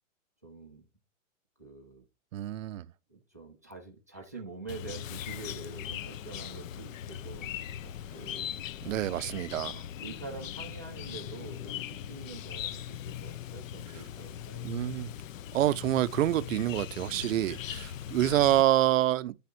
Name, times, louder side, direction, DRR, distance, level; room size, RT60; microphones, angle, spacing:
voice 1, 0.4-0.9 1.6-2.0 3.1-8.5 8.8-8.9 10.0-14.9, right 3 dB, 15° right, 0.3 m, -46 dB
voice 2, 2.3-2.9 8.8-9.8 14.6-15.1 15.5-19.4, right 13 dB, 75° right, 0.5 m, -27 dB
Chirp tweet, 4.7-18.6, left 10 dB, 75° left, 0.6 m, -40 dB
10.0 x 3.5 x 4.3 m
hypercardioid pair, 165°, 40 cm